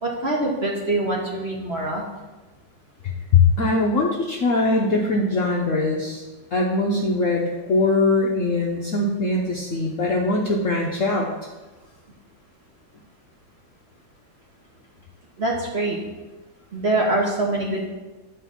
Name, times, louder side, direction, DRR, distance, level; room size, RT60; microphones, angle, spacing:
voice 1, 0.0-2.0 15.4-16.0 16.7-17.9, right 2 dB, 40° right, -2 dB, 1.0 m, -24 dB
voice 2, 3.0-6.2 6.5-11.3, left 3 dB, 60° left, -1 dB, 0.8 m, -21 dB
9.3 x 3.6 x 5.7 m, 1.2 s
omnidirectional pair, 2.1 m